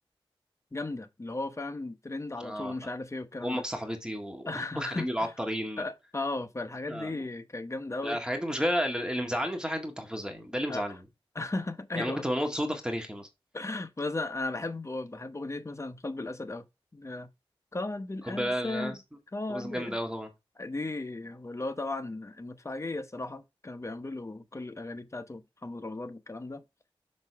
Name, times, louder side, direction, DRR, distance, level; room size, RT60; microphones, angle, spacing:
voice 1, 0.7-3.6 4.4-5.3 5.8-8.2 10.7-10.8 11.3-12.3 13.5-16.7 16.9-17.3 17.7-19.0 19.3-20.0 20.6-26.6, left 2 dB, 30° left, 1.0 m, -36 dB
voice 2, 2.4-2.7 3.4-4.5 4.8-5.8 6.9-7.2 8.0-11.0 12.0-13.3 18.2-19.0 19.5-20.3, equal, 10° right, 1.8 m, -32 dB
6.4 x 6.0 x 3.5 m
wide cardioid pair, 95°, 10 cm